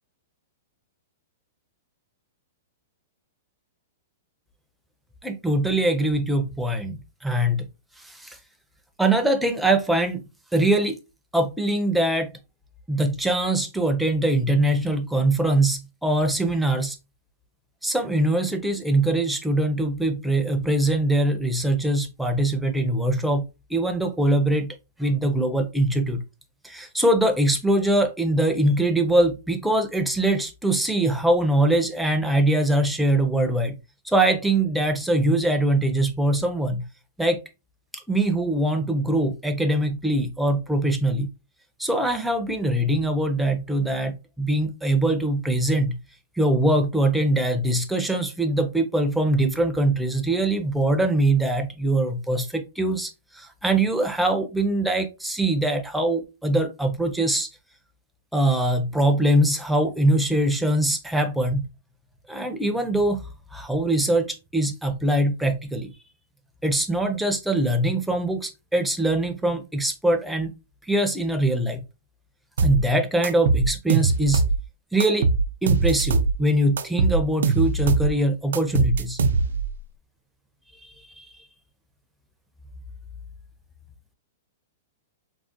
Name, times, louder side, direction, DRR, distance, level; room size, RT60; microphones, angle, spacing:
voice 1, 5.2-7.7 8.0-8.4 9.0-10.2 10.5-11.0 11.3-12.3 12.9-17.0 17.8-23.4 23.7-24.7 25.0-26.2 26.6-33.7 34.0-36.9 37.2-37.4 37.9-41.3 41.8-46.0 46.4-57.5 58.3-61.6 62.3-63.2 63.5-65.9 66.6-70.5 70.9-71.8 72.6-74.4 74.9-75.3 75.6-79.2 80.8-81.3, right 1 dB, ahead, 0.4 m, -22 dB
sound 1, 72.6-72.8 73.2-74.6 75.0-76.4 76.8-78.1 78.5-79.7, right 4 dB, 85° right, 0.4 m, -21 dB
3.5 x 2.0 x 2.5 m
hypercardioid pair, 160°, 0 cm